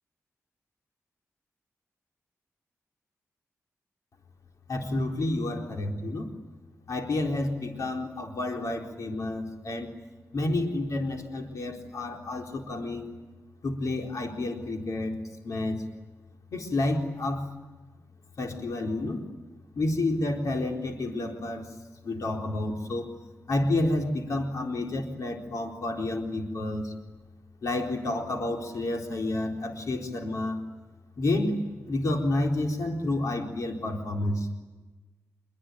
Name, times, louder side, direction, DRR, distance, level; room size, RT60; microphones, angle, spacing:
voice 1, 4.7-6.3 6.9-9.9 10.3-13.1 13.6-15.2 15.4-15.8 16.5-17.5 18.4-19.2 19.7-21.7 22.0-23.1 23.5-26.9 27.6-30.6 31.2-31.6 31.9-34.5, left 2 dB, 70° left, 2 dB, 4.1 m, -30 dB
26.5 x 23.5 x 9.4 m, 1.2 s
cardioid pair, 75°, 6 cm